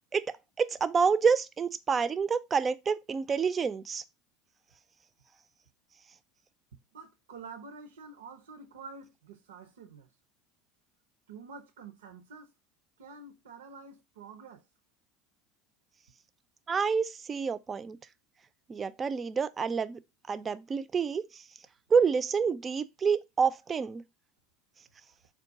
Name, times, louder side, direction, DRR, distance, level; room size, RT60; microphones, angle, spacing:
voice 1, 0.6-4.0 16.7-18.0 18.7-20.0 20.3-21.4 21.9-24.0, right 5 dB, 30° right, 0.4 m, -28 dB
voice 2, 6.9-10.1 11.3-12.5 13.0-14.6, right 4 dB, 80° right, 0.5 m, -48 dB
3.6 x 2.3 x 3.9 m
hypercardioid pair, 75°, 0 cm